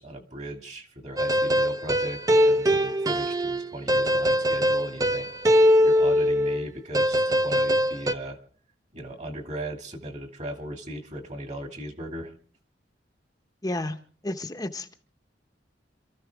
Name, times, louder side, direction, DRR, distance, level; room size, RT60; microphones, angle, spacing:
voice 1, 0.0-5.3 5.8-8.4 8.9-12.3, right 1 dB, 40° right, 2.3 m, -37 dB
sound 1, 1.2-6.7 6.9-8.1, equal, 20° right, 0.7 m, -22 dB
voice 2, 13.6-14.0 14.2-14.9, left 1 dB, 20° left, 0.9 m, -31 dB
27.5 x 14.0 x 3.5 m
head